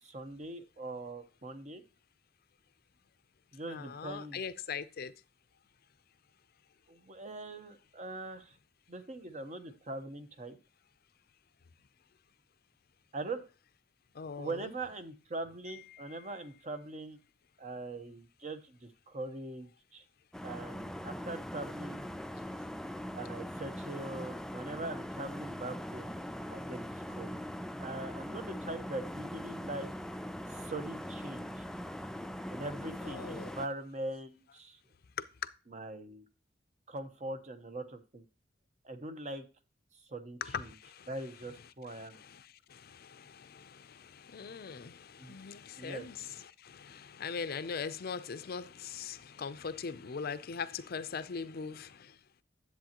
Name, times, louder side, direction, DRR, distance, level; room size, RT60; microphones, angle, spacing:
voice 1, 0.0-1.8 3.5-4.4 6.9-8.5 8.9-10.6 13.1-13.4 14.4-17.2 17.6-20.0 20.4-22.0 23.1-26.2 26.5-27.4 27.8-29.9 30.5-31.6 32.5-34.8 35.7-36.2 36.9-38.2 38.8-39.4 40.1-40.7 41.1-42.2 45.2-45.4 45.8-46.0, right 2 dB, 40° right, 1.0 m, -42 dB
voice 2, 3.7-5.1 14.1-14.7 15.7-16.3 33.0-33.5 35.2-35.3 40.4-41.1 41.9-52.2, left 6 dB, 55° left, 0.5 m, -41 dB
sound 1, 20.3-33.7, equal, 5° left, 0.3 m, -41 dB
10.0 x 7.7 x 2.9 m
head